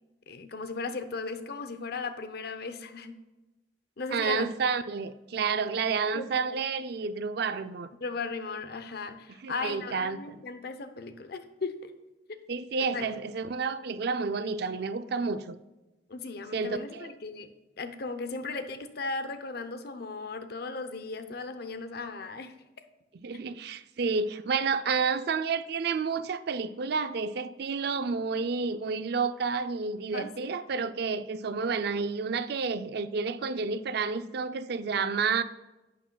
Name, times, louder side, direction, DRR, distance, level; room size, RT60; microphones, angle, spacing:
voice 1, 0.3-3.2 4.0-4.5 6.1-6.6 8.0-11.9 12.3-12.4 12.9-13.1 16.1-17.5 17.8-22.5 23.3-23.4 30.1-30.5, left 4 dB, 60° left, 0.7 m, -37 dB
voice 2, 4.1-7.9 9.4-10.4 12.5-15.6 16.5-17.1 23.1-35.4, right 5 dB, 60° right, 0.4 m, -30 dB
11.0 x 8.4 x 2.3 m
head